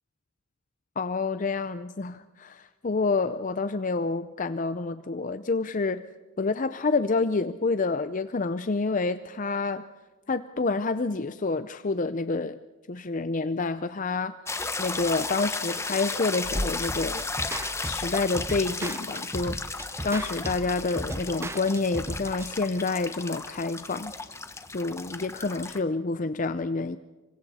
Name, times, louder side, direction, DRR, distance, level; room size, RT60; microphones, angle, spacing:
voice 1, 1.0-6.0 6.4-9.8 10.3-12.6 12.9-14.3 14.8-17.2 17.9-19.6 20.0-24.1 24.7-27.0, left 3 dB, 40° left, 0.6 m, -28 dB
sound 1, 14.5-25.8, left 3 dB, 15° left, 1.1 m, -34 dB
sound 2, 16.9-22.5, right 1 dB, 10° right, 0.7 m, -37 dB
27.5 x 24.5 x 4.2 m
head